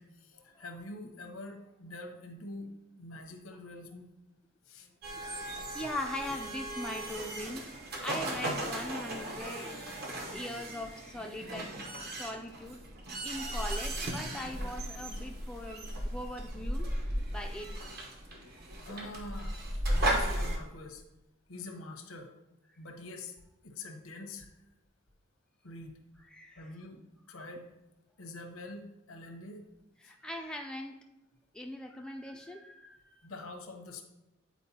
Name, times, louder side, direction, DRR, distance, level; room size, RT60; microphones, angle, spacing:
voice 1, 0.0-2.7 3.0-4.1 4.7-5.0 7.0-7.1 18.8-19.5 19.9-21.0 21.5-22.3 22.8-23.3 23.6-24.5 25.6-26.0 26.5-27.0 27.3-27.7 28.2-29.6 30.0-30.1 33.2-34.0, left 2 dB, 90° left, 5 dB, 0.9 m, -45 dB
sound 1, 5.0-20.6, right 1 dB, 50° right, 0.9 m, -36 dB
voice 2, 5.5-7.7 8.0-12.8 13.2-16.9 17.3-17.7 26.3-26.7 30.0-31.0 31.5-33.2, left 1 dB, 5° left, 2 dB, 0.3 m, -41 dB
8.3 x 4.4 x 2.8 m, 0.97 s
head